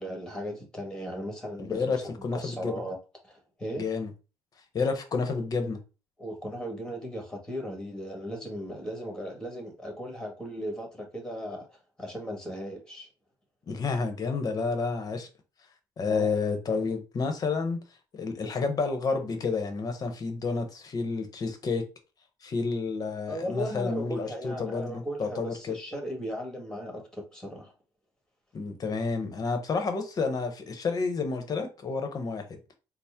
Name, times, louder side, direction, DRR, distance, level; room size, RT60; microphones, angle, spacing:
voice 1, 0.0-3.0 3.2-3.8 6.2-11.7 12.0-13.1 16.1-16.3 23.3-27.7, equal, 5° left, 1.5 m, -37 dB
voice 2, 1.6-2.8 3.8-4.1 4.7-5.8 13.7-15.3 16.0-17.8 18.1-21.9 22.4-25.8 28.5-32.6, left 4 dB, 45° left, 0.8 m, -30 dB
4.2 x 2.0 x 3.5 m
cardioid pair, 105°, 9 cm